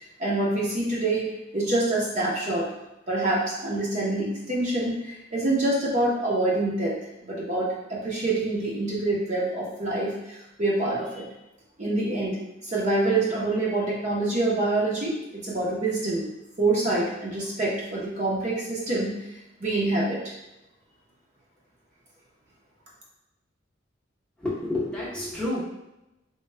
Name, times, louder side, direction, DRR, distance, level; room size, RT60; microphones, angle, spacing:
voice 1, 0.0-2.7 3.1-7.0 7.2-11.2 11.8-16.3 16.6-19.1 19.6-20.2, right 2 dB, 40° right, -5 dB, 0.7 m, -26 dB
voice 2, 24.4-25.6, left 2 dB, 5° left, -8 dB, 0.8 m, -29 dB
3.2 x 2.2 x 3.2 m, 0.93 s
head